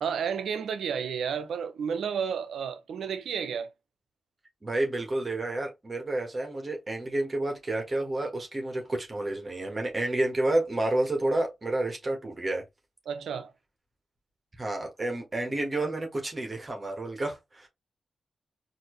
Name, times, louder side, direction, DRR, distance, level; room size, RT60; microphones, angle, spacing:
voice 1, 0.0-3.7 13.1-13.5, right 7 dB, 85° right, 0.7 m, -31 dB
voice 2, 4.6-12.6 14.6-17.7, right 2 dB, 40° right, 1.5 m, -30 dB
4.2 x 2.8 x 3.1 m
supercardioid pair, 45°, 0 cm